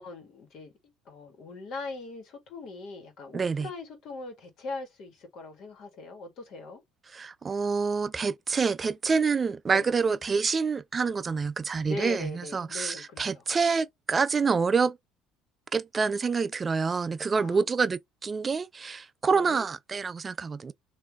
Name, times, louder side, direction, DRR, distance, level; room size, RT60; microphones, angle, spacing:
voice 1, 0.0-6.8 9.7-9.9 11.8-13.4 17.4-17.6 19.3-19.6, left 3 dB, 60° left, 1.7 m, -40 dB
voice 2, 3.3-3.7 7.1-15.0 15.7-20.7, right 5 dB, 30° right, 0.4 m, -27 dB
3.3 x 2.7 x 3.5 m
supercardioid pair, 90°, 0 cm